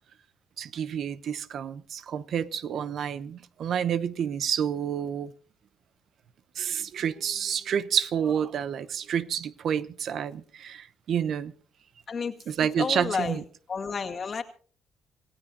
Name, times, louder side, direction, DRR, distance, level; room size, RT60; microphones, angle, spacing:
voice 1, 0.6-5.3 6.6-11.5 12.5-13.4, right 8 dB, 65° right, 0.8 m, -29 dB
voice 2, 12.1-13.4 13.7-14.4, left 5 dB, 45° left, 2.1 m, -31 dB
27.5 x 16.0 x 2.8 m
cardioid pair, 90°, 0 cm